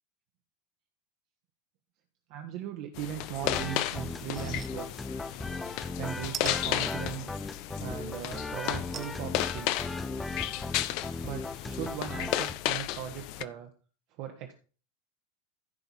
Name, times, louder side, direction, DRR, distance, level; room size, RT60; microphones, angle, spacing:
voice 1, 2.3-4.9 6.0-7.2 7.8-9.8 11.2-13.7 14.2-14.5, right 10 dB, 50° right, 4 dB, 1.3 m, -38 dB
sound 1, 2.9-13.4, left 14 dB, 50° left, 0.6 m, -34 dB
sound 2, 3.4-12.5, left 3 dB, 10° left, 0.6 m, -37 dB
sound 3, 4.3-4.7 5.1-5.2 6.3-6.6 8.9-9.2 9.8-9.9 10.1-10.2, right 8 dB, 30° right, 0.8 m, -40 dB
15.0 x 5.3 x 4.2 m, 0.37 s
figure-of-eight pair, 80°, 0 cm